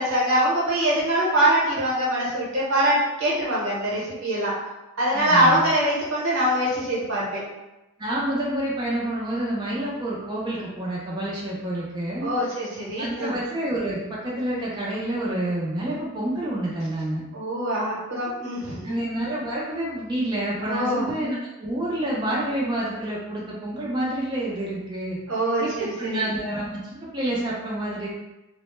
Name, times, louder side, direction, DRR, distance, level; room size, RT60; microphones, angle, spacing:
voice 1, 0.0-4.5 5.0-7.4 12.2-13.3 17.3-19.0 20.6-21.1 25.3-26.2, right 1 dB, 85° right, -6 dB, 0.9 m, -23 dB
voice 2, 5.1-5.6 8.0-12.3 13.0-17.2 18.8-25.2 25.6-28.1, right 1 dB, 20° right, -5 dB, 0.4 m, -28 dB
2.1 x 2.1 x 3.0 m, 1.0 s
head